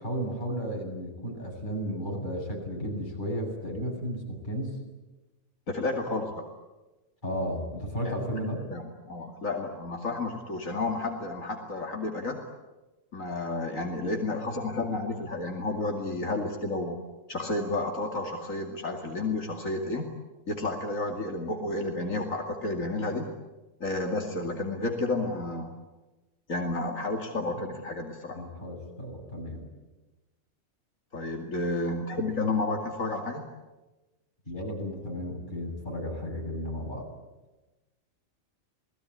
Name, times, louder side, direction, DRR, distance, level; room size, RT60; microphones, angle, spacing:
voice 1, 0.0-4.7 7.2-8.6 28.3-29.7 34.5-37.1, equal, 35° left, 0 dB, 8.1 m, -34 dB
voice 2, 5.7-6.4 8.0-8.1 8.7-12.4 13.1-17.0 17.3-20.0 20.5-23.3 23.8-25.7 26.5-28.4 31.1-33.4, left 2 dB, 80° left, 2 dB, 2.9 m, -31 dB
29.0 x 20.0 x 10.0 m, 1.1 s
omnidirectional pair, 1.4 m